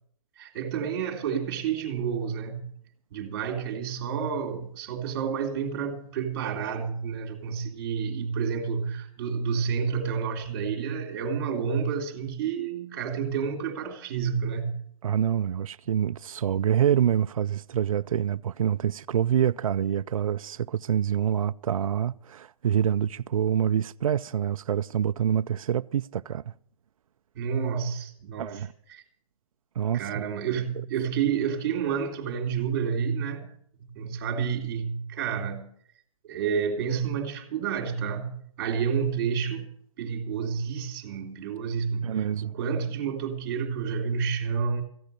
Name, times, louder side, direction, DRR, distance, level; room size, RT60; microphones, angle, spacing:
voice 1, 0.4-2.6 3.1-14.7 27.3-28.6 28.9-29.0 29.9-33.5 33.8-35.7 36.2-39.7 40.0-44.8, right 6 dB, 30° right, 2.5 m, -30 dB
voice 2, 15.0-26.5 28.4-28.7 29.8-30.3 42.0-42.5, right 9 dB, 70° right, 0.5 m, -26 dB
15.0 x 10.5 x 6.7 m
hypercardioid pair, 170°, 19 cm